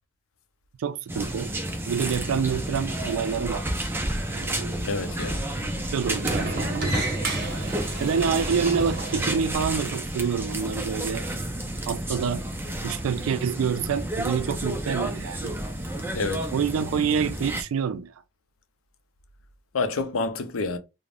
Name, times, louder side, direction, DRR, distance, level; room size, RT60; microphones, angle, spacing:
voice 1, 0.8-1.5 1.9-3.6 4.3-4.9 5.9-6.9 8.0-11.2 11.9-12.4 12.8-15.5 16.5-18.1, right 6 dB, 85° right, 0.3 m, -27 dB
sound 1, 1.1-17.6, right 1 dB, 10° right, 0.3 m, -31 dB
Sliding door, 2.5-9.5, right 2 dB, 50° right, 0.7 m, -34 dB
voice 2, 4.8-5.5 16.1-16.5 19.7-20.8, left 3 dB, 80° left, 0.5 m, -28 dB
2.5 x 2.0 x 3.3 m
head